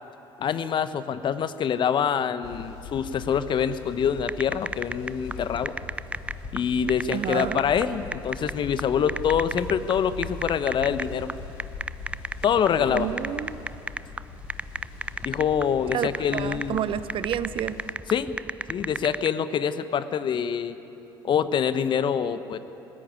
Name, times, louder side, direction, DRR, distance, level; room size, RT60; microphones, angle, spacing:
voice 1, 0.4-5.7 6.5-11.3 12.4-13.1 15.2-16.8 18.1-18.4 18.7-20.7 21.2-22.6, left 7 dB, 40° left, 13 dB, 1.0 m, -25 dB
sound 1, 2.4-17.9, left 5 dB, 65° left, 2.2 m, -41 dB
sound 2, 4.2-19.3, right 2 dB, 10° right, 0.4 m, -34 dB
voice 2, 7.1-7.6 12.9-13.6 15.9-17.8, right 10 dB, 45° right, 14 dB, 0.9 m, -30 dB
19.5 x 16.0 x 9.6 m, 2.9 s
figure-of-eight pair, 60°, 12 cm